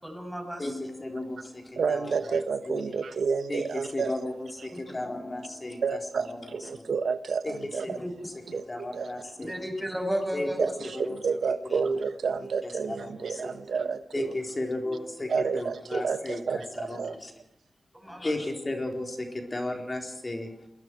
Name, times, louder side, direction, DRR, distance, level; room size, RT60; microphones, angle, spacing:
voice 1, 0.0-0.9 8.0-8.1 9.4-10.8 17.9-18.4, equal, 5° right, 7.4 m, -33 dB
voice 2, 0.6-2.4 2.7-3.0 3.5-5.8 6.3-6.8 7.4-7.5 7.8-8.3 8.7-9.5 10.3-11.2 11.6-11.8 12.6-13.5 14.1-17.3 18.0-20.7, left 2 dB, 30° left, 4.1 m, -35 dB
voice 3, 1.8-4.1 4.6-4.7 5.8-8.0 8.5-9.1 9.4-9.5 10.6-14.4 15.3-17.2, right 5 dB, 90° right, 1.2 m, -30 dB
30.0 x 22.0 x 4.8 m
wide cardioid pair, 105°, 0 cm